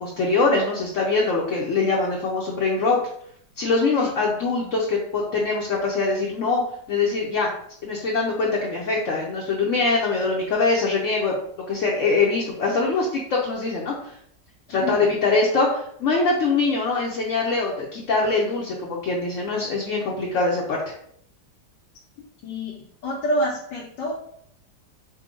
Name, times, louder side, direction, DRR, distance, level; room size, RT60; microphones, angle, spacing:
voice 1, 0.0-3.0 3.6-6.6 6.9-7.5 7.8-11.3 11.7-14.2 14.7-20.8, left 3 dB, 55° left, -2 dB, 0.9 m, -23 dB
voice 2, 22.4-22.7 23.0-24.1, equal, 85° left, -4 dB, 1.5 m, -27 dB
5.7 x 2.3 x 3.7 m, 0.68 s
omnidirectional pair, 1.9 m